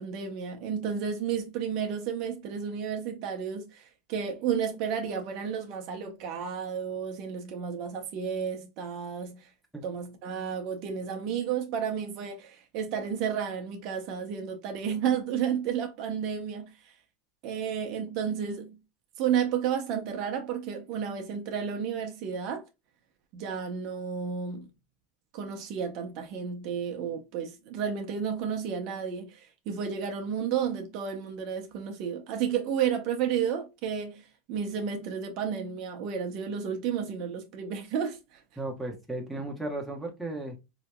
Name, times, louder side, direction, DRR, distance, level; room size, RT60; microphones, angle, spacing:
voice 1, 0.0-9.5 9.8-16.9 17.4-18.8 19.2-22.6 23.3-24.7 25.3-38.4, right 7 dB, 50° right, 0.8 m, -32 dB
voice 2, 38.6-40.5, right 2 dB, ahead, 1.1 m, -35 dB
4.0 x 2.9 x 2.2 m
supercardioid pair, 125°, 0 cm